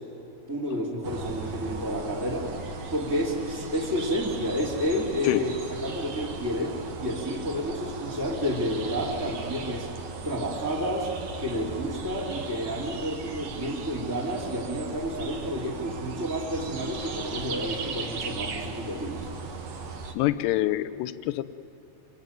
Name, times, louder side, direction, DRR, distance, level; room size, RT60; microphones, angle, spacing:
voice 1, 0.5-2.5 2.9-9.9 10.2-11.1 11.4-19.3, equal, 5° right, -1 dB, 1.9 m, -30 dB
sound 1, 1.0-20.1, right 4 dB, 50° right, 2.0 m, -37 dB
voice 2, 20.1-21.4, left 15 dB, 80° left, 13 dB, 2.8 m, -26 dB
26.5 x 23.5 x 9.2 m, 2.9 s
omnidirectional pair, 5.1 m